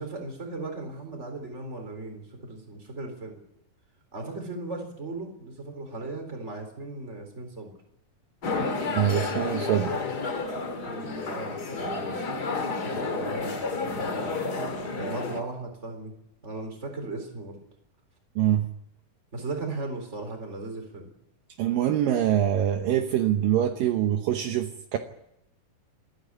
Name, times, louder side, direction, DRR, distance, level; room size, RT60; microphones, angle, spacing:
voice 1, 0.0-3.4 4.1-7.7 10.8-12.6 12.8-14.4 15.0-16.1 16.4-17.6 19.3-21.1, right 2 dB, 20° right, 4 dB, 3.9 m, -37 dB
sound 1, 8.4-15.4, left 3 dB, 35° left, 1.9 m, -31 dB
voice 2, 8.9-10.0 18.4-18.7 21.6-25.0, right 11 dB, 70° right, 5 dB, 2.6 m, -24 dB
27.5 x 10.5 x 9.6 m, 0.83 s
omnidirectional pair, 4.4 m